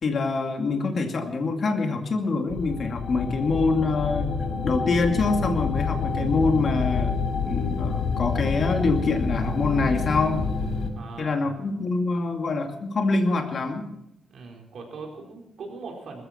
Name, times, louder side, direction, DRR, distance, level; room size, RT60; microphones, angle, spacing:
voice 1, 0.0-4.3 4.6-7.1 7.4-10.4 11.2-13.9, left 3 dB, 45° left, 4 dB, 2.5 m, -25 dB
sound 1, 2.5-10.9, left 5 dB, 70° left, 2.2 m, -28 dB
voice 2, 10.9-11.6 14.3-16.2, right 4 dB, 60° right, 1 dB, 4.7 m, -40 dB
20.5 x 14.5 x 4.5 m, 0.80 s
cardioid pair, 135°, 0 cm